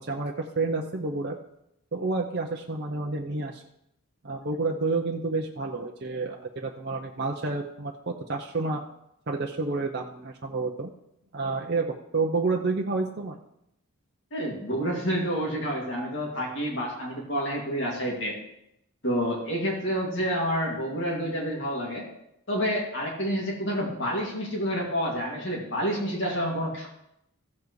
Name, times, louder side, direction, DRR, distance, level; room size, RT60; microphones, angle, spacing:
voice 1, 0.0-1.3 1.9-3.6 4.2-8.8 9.3-10.9 11.3-13.4, right 3 dB, 50° right, 1 dB, 0.7 m, -29 dB
voice 2, 14.3-18.3 19.0-22.0 22.5-26.9, equal, 55° left, -2 dB, 2.4 m, -29 dB
15.0 x 7.3 x 3.2 m, 0.81 s
head